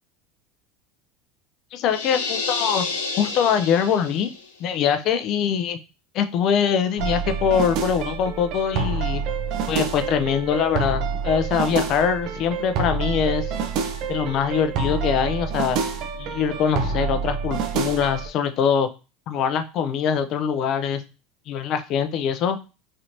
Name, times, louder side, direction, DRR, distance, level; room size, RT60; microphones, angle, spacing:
voice 1, 1.7-2.8 3.2-4.3 4.6-5.8 6.1-9.2 9.7-13.5 14.1-15.8 16.2-18.9 19.3-21.0 21.5-22.6, left 7 dB, 55° left, 10 dB, 0.4 m, -23 dB
sound 1, 1.9-4.4, left 4 dB, 90° left, 0.7 m, -29 dB
sound 2, 7.0-18.3, right 5 dB, 60° right, 0.6 m, -27 dB
3.2 x 2.8 x 2.6 m, 0.31 s
supercardioid pair, 100°, 0 cm